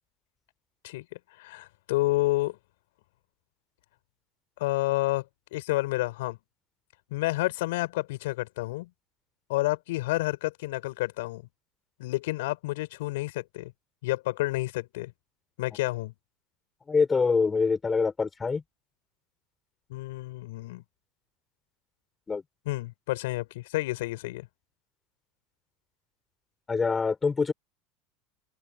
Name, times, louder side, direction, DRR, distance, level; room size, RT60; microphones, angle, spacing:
voice 1, 1.4-2.6 4.6-5.2 5.5-6.4 7.1-8.9 9.5-11.4 12.0-13.7 14.0-15.1 15.6-16.1 19.9-20.8 22.7-24.5, left 19 dB, 75° left, 7.1 m, -29 dB
voice 2, 16.9-18.6 22.3-22.4 26.7-27.5, left 4 dB, 20° left, 6.8 m, -25 dB
open air
hypercardioid pair, 85°, 0 cm